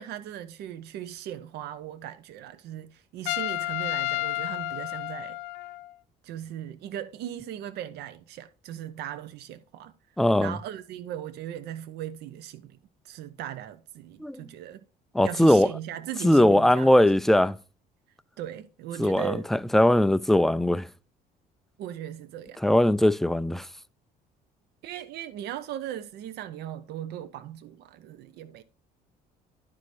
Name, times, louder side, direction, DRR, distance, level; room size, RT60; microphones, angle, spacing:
voice 1, 0.0-5.4 6.2-9.9 10.4-12.8 13.0-14.8 15.2-16.9 18.4-19.5 21.8-22.6 24.8-28.6, right 11 dB, 75° right, 0.7 m, -38 dB
Trumpet, 3.3-5.9, left 19 dB, 90° left, 0.4 m, -31 dB
voice 2, 10.2-10.6 14.2-14.5 15.1-15.7 16.2-17.6 19.0-20.9 22.6-23.7, left 1 dB, ahead, 0.3 m, -20 dB
11.5 x 4.8 x 4.2 m
cardioid pair, 110°, 17 cm